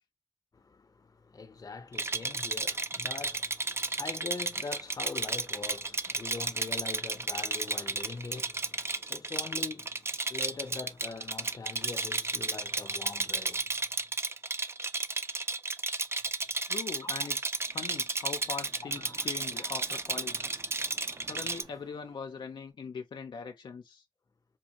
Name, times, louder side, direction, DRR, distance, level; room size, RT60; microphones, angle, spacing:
voice 1, 0.5-13.7 17.0-17.3 19.0-19.3 19.6-19.7, left 4 dB, 50° left, 0.7 m, -43 dB
Rattle, 1.9-21.6, right 3 dB, 35° right, 0.4 m, -33 dB
voice 2, 16.7-20.4 21.2-24.0, left 5 dB, 90° left, 0.5 m, -41 dB
Mechanisms, 17.5-22.7, right 3 dB, 50° right, 0.8 m, -56 dB
4.4 x 2.5 x 2.9 m
wide cardioid pair, 70°, 8 cm